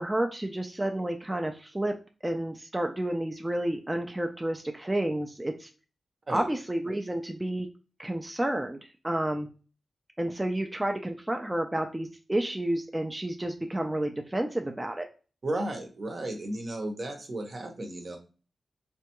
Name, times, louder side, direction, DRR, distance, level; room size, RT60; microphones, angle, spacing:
voice 1, 0.0-1.9 2.2-5.7 6.3-7.7 8.0-9.5 10.2-15.1, right 1 dB, 15° right, 4 dB, 0.4 m, -30 dB
voice 2, 15.4-18.2, right 1 dB, 55° right, 3 dB, 0.8 m, -34 dB
3.4 x 2.2 x 2.9 m, 0.35 s
cardioid pair, 65°, 0 cm